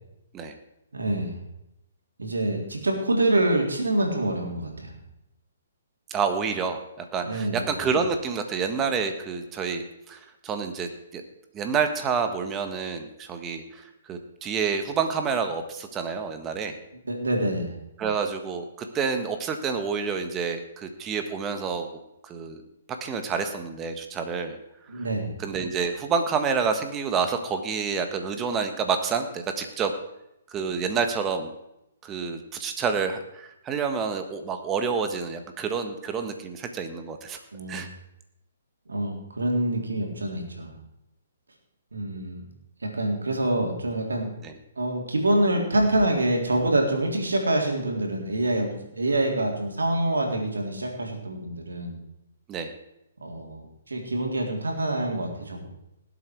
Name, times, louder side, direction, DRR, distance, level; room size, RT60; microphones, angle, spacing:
voice 1, 0.9-1.4 2.2-5.0 7.2-7.7 17.0-17.7 24.9-25.4 37.5-37.9 38.9-40.8 41.9-42.4 42.8-44.3 44.8-52.0 53.2-55.7, right 1 dB, 90° right, 1 dB, 3.8 m, -26 dB
voice 2, 6.1-6.8 7.1-11.2 11.5-16.8 18.0-22.6 22.9-24.6 25.4-29.9 30.5-31.5 32.0-37.4 37.7-37.9 44.4-44.5 52.5-52.7, right 5 dB, 20° right, 7 dB, 1.5 m, -28 dB
19.0 x 8.2 x 4.8 m, 0.84 s
hypercardioid pair, 135°, 0 cm